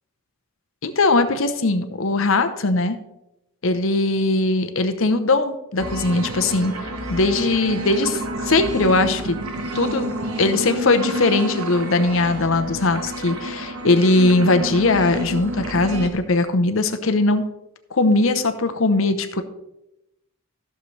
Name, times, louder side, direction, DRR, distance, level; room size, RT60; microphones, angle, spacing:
voice 1, 0.8-3.0 3.6-6.7 7.1-9.4 9.7-10.1 10.4-17.4 17.9-19.4, left 2 dB, 65° left, 8 dB, 0.8 m, -20 dB
sound 1, 5.8-16.1, equal, 85° right, 1.2 m, -29 dB
14.0 x 6.7 x 3.2 m, 0.89 s
head